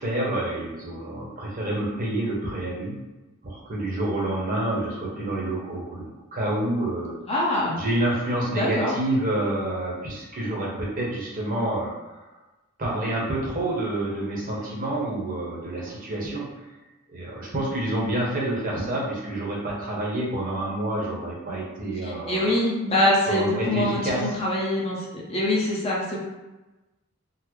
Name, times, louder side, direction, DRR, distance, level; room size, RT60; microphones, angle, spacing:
voice 1, 0.0-3.0 3.4-7.1 7.7-12.2 12.8-16.5 17.1-22.6 23.3-24.3, right 1 dB, 40° right, -4 dB, 0.9 m, -28 dB
voice 2, 7.3-7.8 8.5-8.9 22.1-26.2, left 1 dB, 30° left, -5 dB, 0.7 m, -24 dB
3.9 x 2.0 x 3.1 m, 1.1 s
head